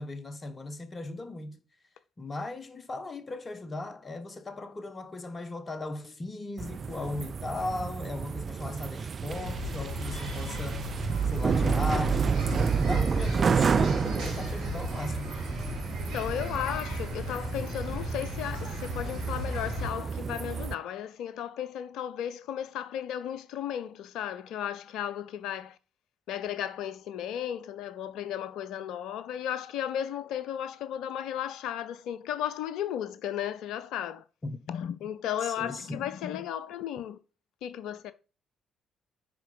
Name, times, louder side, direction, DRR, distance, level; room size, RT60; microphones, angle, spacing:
voice 1, 0.0-1.6 2.2-10.8 11.3-15.3 34.4-34.6 35.4-36.0, left 2 dB, 30° left, 1.3 m, -37 dB
sound 1, 6.6-20.7, right 6 dB, 40° right, 0.5 m, -30 dB
sound 2, 9.3-19.9, left 2 dB, 70° right, 4.1 m, -37 dB
voice 2, 16.0-25.8 26.3-34.2 34.7-37.2 37.6-38.1, left 10 dB, 60° left, 0.6 m, -35 dB
10.5 x 4.6 x 5.3 m
figure-of-eight pair, 45°, 0 cm